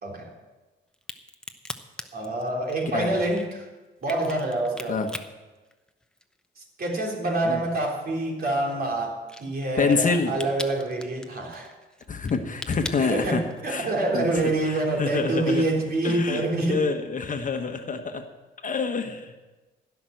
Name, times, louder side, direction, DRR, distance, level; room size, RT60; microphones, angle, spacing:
Crack, 0.9-6.4 6.8-13.8, left 1 dB, 5° left, 0.9 m, -41 dB
voice 1, 2.1-3.7 4.0-5.0 6.6-11.7 13.0-16.8, right 2 dB, 50° right, 0 dB, 3.4 m, -26 dB
voice 2, 2.8-3.2 4.9-5.1 7.4-7.6 9.8-10.3 12.1-13.4 13.7-13.9 14.1-15.7 16.0-18.2 18.6-19.3, left 4 dB, 40° left, 6 dB, 1.3 m, -27 dB
16.0 x 6.0 x 7.9 m, 1.2 s
cardioid pair, 90°, 20 cm